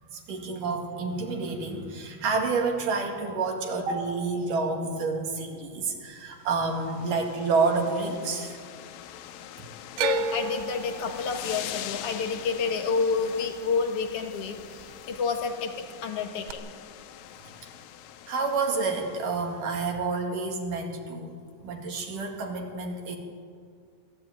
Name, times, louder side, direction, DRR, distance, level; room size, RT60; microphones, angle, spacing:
voice 1, 0.1-8.6 18.3-21.3 21.6-23.2, right 4 dB, 65° right, 2 dB, 3.5 m, -29 dB
sound 1, 6.4-19.6, left 11 dB, 80° left, 2.6 m, -43 dB
voice 2, 10.0-15.7 16.0-16.7, left 5 dB, 50° left, 5 dB, 2.1 m, -29 dB
sound 2, 10.0-14.2 14.5-15.2 16.5-16.6, right 5 dB, 85° right, 1.5 m, -34 dB
23.5 x 14.0 x 9.1 m, 2.2 s
omnidirectional pair, 4.2 m